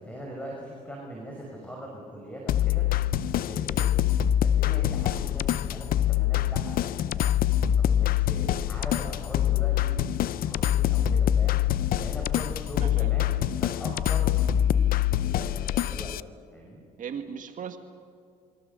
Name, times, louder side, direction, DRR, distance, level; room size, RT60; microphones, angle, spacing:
voice 1, 0.0-2.9 3.2-4.0 4.4-7.3 7.7-11.6 12.0-13.3 13.6-16.1 16.5-16.8, right 1 dB, 10° left, -2 dB, 5.7 m, -41 dB
sound 1, 2.5-16.2, left 11 dB, 60° left, 0.6 m, -25 dB
voice 2, 12.8-13.2 13.8-14.0 17.0-17.8, right 7 dB, 50° right, 6 dB, 1.9 m, -38 dB
27.5 x 25.0 x 6.9 m, 2.2 s
cardioid pair, 110°, 17 cm